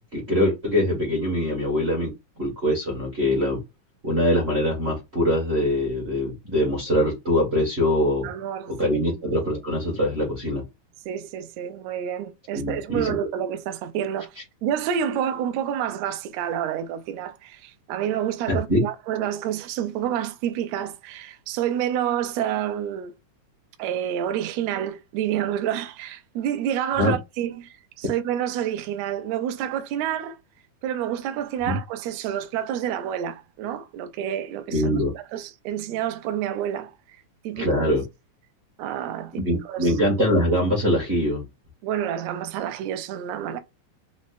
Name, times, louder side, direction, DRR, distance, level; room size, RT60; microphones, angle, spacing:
voice 1, 0.1-2.1 2.4-3.6 4.0-8.3 8.7-10.6 12.5-13.2 18.5-18.8 27.0-27.1 31.7-31.8 34.7-35.1 37.5-38.0 39.4-41.4, left 1 dB, 45° right, 0.7 m, -23 dB
voice 2, 8.2-8.7 11.0-23.1 23.8-30.4 30.8-36.9 37.4-37.7 38.8-39.9 41.8-43.6, right 10 dB, 75° right, 1.6 m, -28 dB
5.3 x 2.0 x 2.5 m
omnidirectional pair, 3.5 m